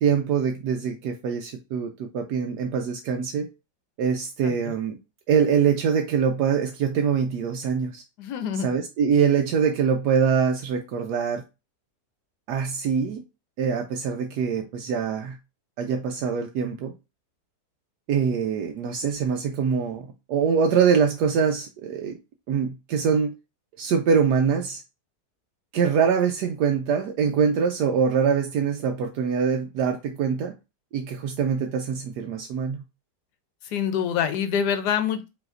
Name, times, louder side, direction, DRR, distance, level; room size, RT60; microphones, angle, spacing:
voice 1, 0.0-3.5 4.0-5.0 5.3-8.0 8.6-11.4 12.5-13.2 13.6-15.4 15.8-16.9 18.1-22.2 22.5-23.3 23.8-24.8 25.7-30.5 30.9-32.8, right 6 dB, 80° right, 1.2 m, -24 dB
voice 2, 4.4-4.7 8.2-8.7 33.6-35.3, left 8 dB, 80° left, 1.2 m, -26 dB
4.9 x 3.3 x 2.5 m
omnidirectional pair, 1.8 m